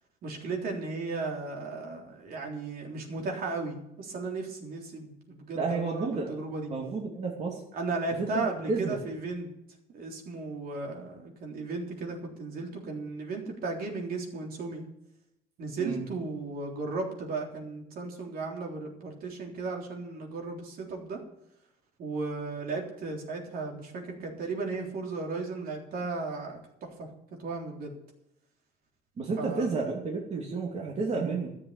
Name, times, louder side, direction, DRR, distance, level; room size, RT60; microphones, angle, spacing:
voice 1, 0.2-6.7 7.7-9.5 9.9-14.9 15.6-21.2 22.0-27.1 27.4-27.9 29.4-29.7, right 3 dB, 60° right, 0 dB, 3.6 m, -35 dB
voice 2, 5.5-6.3 6.7-7.6 8.2-9.0 15.8-16.0 29.2-31.5, right 4 dB, 40° right, -1 dB, 2.7 m, -31 dB
13.0 x 7.7 x 8.7 m, 0.81 s
cardioid pair, 110°, 17 cm